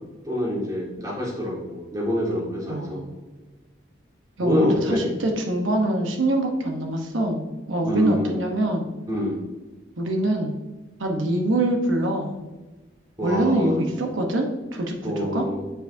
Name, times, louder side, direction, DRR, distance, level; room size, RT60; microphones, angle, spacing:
voice 1, 0.3-3.0 4.4-5.1 7.9-8.4 9.1-9.4 13.2-13.8 15.0-15.6, equal, 20° right, -4 dB, 1.9 m, -26 dB
voice 2, 2.7-3.2 4.4-8.9 10.0-10.5 11.0-12.3 13.2-15.4, right 1 dB, 80° right, 2 dB, 0.9 m, -24 dB
8.9 x 5.1 x 2.6 m, 1.2 s
head